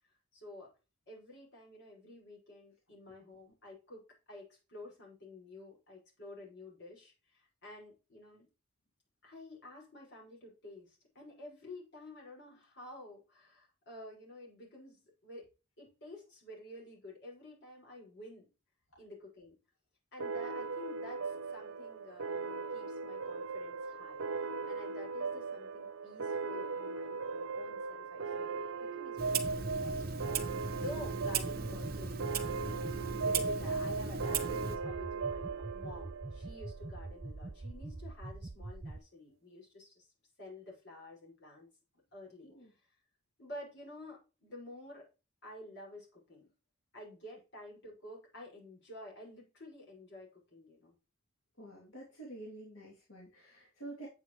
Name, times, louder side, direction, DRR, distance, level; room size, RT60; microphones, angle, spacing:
voice 1, 0.1-0.7 1.1-4.0 4.3-8.5 9.2-15.5 15.8-18.5 19.0-19.6 20.1-28.5 28.8-40.1 40.4-41.7 42.1-42.5 43.4-45.1 45.4-46.5 46.9-51.0, left 1 dB, 55° left, -3 dB, 5.7 m, -51 dB
sound 1, 20.2-37.3, right 4 dB, 90° right, 0.8 m, -38 dB
Clock, 29.2-34.8, right 6 dB, 45° right, 1.2 m, -38 dB
sound 2, 29.4-39.0, right 2 dB, 20° right, 0.3 m, -44 dB
voice 2, 51.6-54.1, right 2 dB, 80° left, -3 dB, 2.9 m, -48 dB
8.8 x 8.3 x 3.1 m, 0.31 s
head